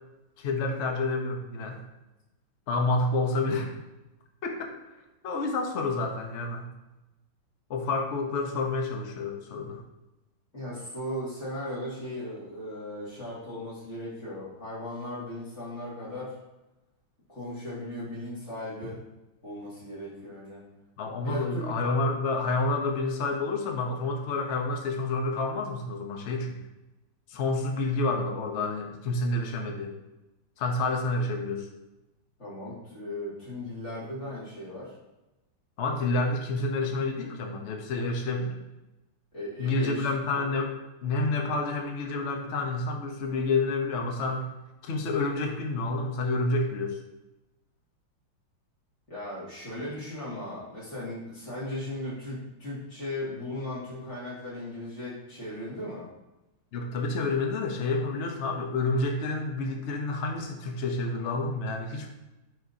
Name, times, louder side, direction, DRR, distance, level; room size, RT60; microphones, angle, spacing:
voice 1, 0.4-1.8 2.7-3.7 4.4-4.8 5.2-6.7 7.7-9.8 21.0-26.6 27.3-29.9 30.6-31.7 35.8-38.5 39.6-40.7 41.0-44.5 44.8-47.0 56.7-62.1, left 2 dB, 55° left, 3 dB, 0.7 m, -29 dB
voice 2, 10.5-16.3 17.3-19.0 19.4-20.6 21.2-21.7 32.4-35.0 39.3-40.1 49.1-56.1, left 1 dB, 35° left, -8 dB, 2.4 m, -37 dB
9.0 x 4.2 x 2.7 m, 1.0 s
omnidirectional pair, 2.2 m